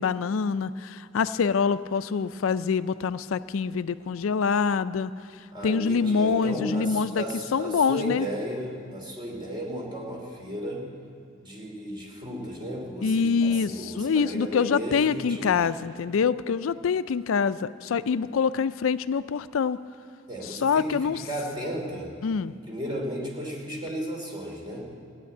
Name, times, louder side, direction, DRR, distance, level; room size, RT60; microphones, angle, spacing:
voice 1, 0.0-5.1 5.6-7.2 7.5-8.3 13.0-19.8 20.4-21.2 22.2-22.5, left 5 dB, 85° left, 14 dB, 0.4 m, -25 dB
voice 2, 5.5-10.9 11.4-15.7 18.2-18.3 20.3-22.1 22.6-24.8, equal, 25° right, -1 dB, 2.6 m, -34 dB
16.0 x 9.9 x 8.4 m, 2.5 s
head